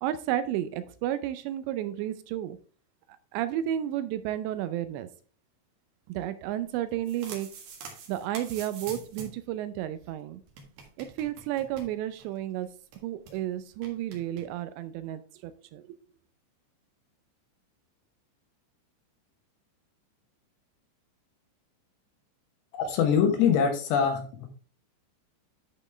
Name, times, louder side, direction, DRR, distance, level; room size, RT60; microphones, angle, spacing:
voice 1, 0.0-2.6 3.3-5.1 6.1-7.5 8.1-10.4 11.0-12.7 13.0-16.0, right 12 dB, 85° right, 12 dB, 2.6 m, -32 dB
sound 1, 6.8-9.5 9.8-9.9 10.0-10.1 10.5-12.4 12.6-12.7 12.9-13.4 13.8-14.4, right 5 dB, 60° right, 3.3 m, -45 dB
voice 2, 22.7-24.5, left 7 dB, 75° left, 5 dB, 3.0 m, -24 dB
10.5 x 5.1 x 3.3 m, 0.39 s
omnidirectional pair, 5.5 m